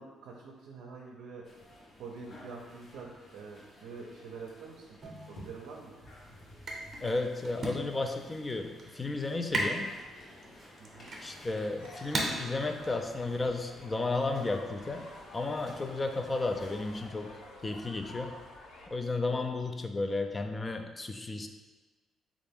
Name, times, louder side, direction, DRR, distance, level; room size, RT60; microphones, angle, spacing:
voice 1, 0.0-1.4 2.0-5.0 5.3-5.9 10.8-11.1 19.3-19.4, right 4 dB, 90° right, -2 dB, 0.4 m, -46 dB
sound 1, 1.4-17.1, left 1 dB, 50° left, 0.8 m, -55 dB
sound 2, 5.0-13.8, right 1 dB, 45° right, 0.7 m, -39 dB
voice 2, 7.0-10.0 11.2-15.1 15.3-18.4 18.9-21.5, left 3 dB, 25° left, 6 dB, 0.3 m, -33 dB
sound 3, 11.8-18.9, left 2 dB, 90° left, 0.5 m, -49 dB
3.5 x 2.4 x 3.4 m, 1.2 s
cardioid pair, 90°, 0 cm